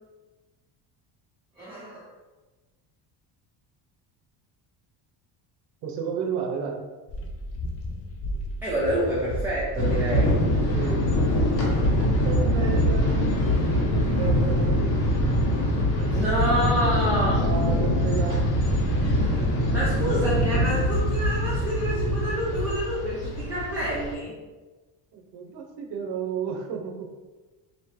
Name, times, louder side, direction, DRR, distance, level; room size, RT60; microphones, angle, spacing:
voice 1, 1.6-2.1 8.6-10.5 11.6-11.8 16.1-17.4 19.7-24.4, equal, 5° right, -9 dB, 0.7 m, -28 dB
voice 2, 5.8-6.8 10.7-11.0 12.2-13.1 13.9-15.0 15.3-15.5 16.0-16.1 17.3-18.4 25.1-27.1, right 6 dB, 65° right, 2 dB, 0.8 m, -32 dB
sound 1, 7.1-20.7, left 1 dB, 35° left, 0.4 m, -34 dB
sound 2, 9.8-24.1, equal, 85° left, 1.4 m, -24 dB
3.1 x 2.9 x 4.5 m, 1.2 s
cardioid pair, 160°, 45 cm